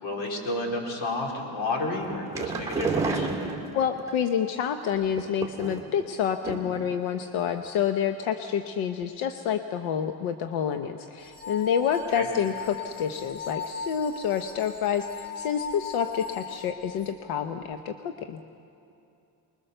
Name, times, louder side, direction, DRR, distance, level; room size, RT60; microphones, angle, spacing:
voice 1, 0.0-3.3 12.1-12.3, left 2 dB, 70° left, 0 dB, 4.0 m, -31 dB
sound 1, 2.0-4.1 5.1-6.0 6.4-6.9 7.1-7.2 7.6-7.7, right 4 dB, 5° right, 2.1 m, -30 dB
voice 2, 3.7-18.4, left 8 dB, 90° left, 7 dB, 1.1 m, -28 dB
sound 2, 11.2-17.1, left 6 dB, 10° left, 1.4 m, -38 dB
24.5 x 21.5 x 6.8 m, 2.7 s
cardioid pair, 165°, 47 cm